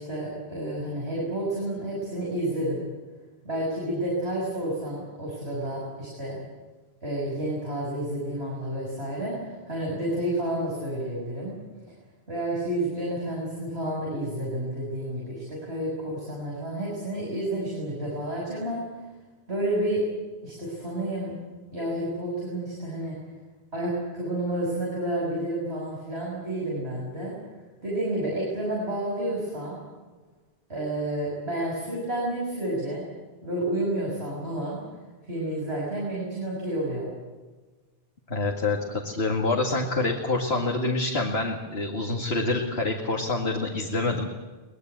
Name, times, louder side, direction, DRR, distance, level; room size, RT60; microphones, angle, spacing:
voice 1, 0.0-2.9 3.4-6.4 7.0-11.5 12.3-18.8 19.5-20.0 20.4-21.3 21.7-23.2 23.7-27.3 27.8-29.8 30.7-33.1 33.4-34.8 35.3-37.1, right 1 dB, 85° right, -4 dB, 6.9 m, -30 dB
voice 2, 38.3-44.3, left 2 dB, 80° left, 0 dB, 2.4 m, -26 dB
24.0 x 20.5 x 8.1 m, 1.3 s
omnidirectional pair, 1.1 m